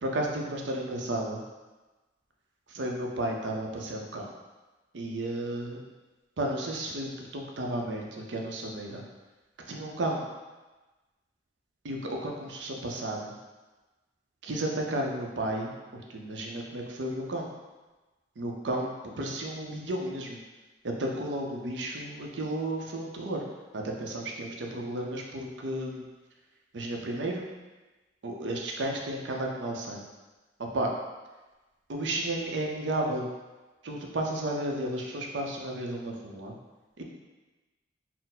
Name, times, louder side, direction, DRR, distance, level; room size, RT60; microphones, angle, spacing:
voice 1, 0.0-1.4 2.7-4.3 4.9-5.8 6.4-9.0 9.7-10.3 11.8-13.3 14.4-17.5 18.4-20.4 20.8-23.4 23.7-26.0 26.7-27.5 28.2-30.1 30.6-30.9 31.9-33.3 33.8-36.5 37.0-37.1, right 1 dB, 80° right, 1 dB, 0.6 m, -33 dB
4.2 x 2.0 x 4.0 m, 1.2 s
head